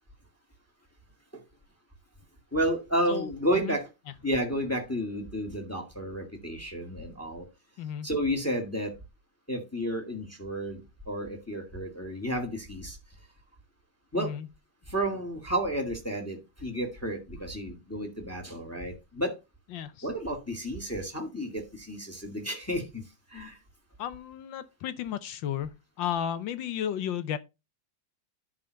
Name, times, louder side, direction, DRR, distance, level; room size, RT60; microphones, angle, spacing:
voice 1, 2.5-3.9 4.2-7.5 8.0-8.9 9.5-13.0 14.1-14.3 14.9-19.4 20.0-23.6, equal, 10° left, 1.6 m, -31 dB
voice 2, 3.1-3.8 7.8-8.1 14.1-14.5 19.7-20.1 24.0-27.4, left 9 dB, 75° left, 1.4 m, -34 dB
10.5 x 3.7 x 6.3 m
omnidirectional pair, 2.2 m